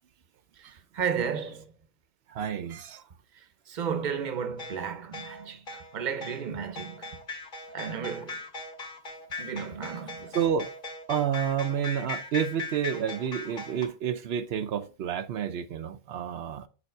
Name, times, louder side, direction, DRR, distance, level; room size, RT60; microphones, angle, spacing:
voice 1, 0.6-1.6 3.4-7.2 7.7-8.4 9.4-10.4, right 7 dB, 50° right, 0.9 m, -33 dB
voice 2, 2.3-3.0 10.3-10.7 11.1-16.7, right 8 dB, 80° right, 0.8 m, -29 dB
sound 1, 4.6-13.9, left 3 dB, 60° left, 2.2 m, -39 dB
7.0 x 4.3 x 4.4 m
omnidirectional pair, 1.0 m